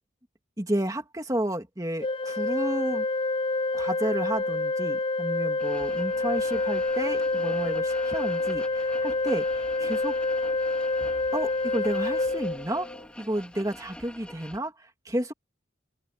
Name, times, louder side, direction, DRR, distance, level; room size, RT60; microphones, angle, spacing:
voice 1, 0.6-3.1 3.7-10.2 11.3-12.9 13.2-15.3, right 1 dB, 20° right, 2.4 m, -31 dB
Organ, 2.0-13.1, left 2 dB, 25° left, 0.4 m, -27 dB
sound 1, 5.6-14.6, left 1 dB, 5° left, 3.6 m, -47 dB
open air
head